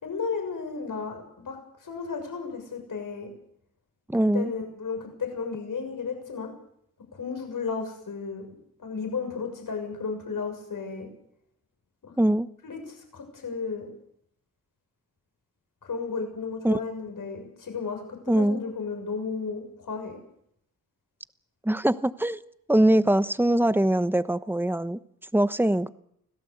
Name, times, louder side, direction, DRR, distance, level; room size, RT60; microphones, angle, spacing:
voice 1, 0.0-3.3 4.3-6.5 7.1-8.5 8.8-11.1 12.0-12.1 12.6-13.9 15.8-20.2, left 5 dB, 70° left, 4 dB, 6.8 m, -34 dB
voice 2, 4.1-4.5 12.2-12.5 16.6-16.8 18.3-18.6 21.6-22.4 22.7-25.0 25.3-25.9, right 1 dB, 5° right, 13 dB, 1.0 m, -22 dB
25.5 x 17.0 x 8.1 m, 0.74 s
cardioid pair, 85°, 34 cm